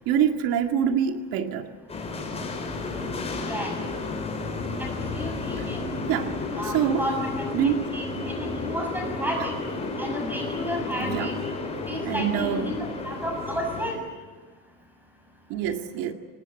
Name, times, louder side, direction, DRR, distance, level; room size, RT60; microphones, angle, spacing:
voice 1, 0.1-1.7 5.6-5.7 6.1-6.3 6.6-7.1 7.5-7.8 11.0-11.3 12.1-12.8 15.5-16.1, right 9 dB, 90° right, 5 dB, 2.1 m, -25 dB
sound 1, 1.9-13.9, left 3 dB, 20° left, 4.9 m, -32 dB
voice 2, 3.4-3.8 4.8-5.8 6.6-9.5 10.0-11.3 11.9-14.0, equal, 5° right, 3 dB, 6.7 m, -32 dB
26.0 x 19.0 x 9.1 m, 1.5 s
cardioid pair, 165°, 34 cm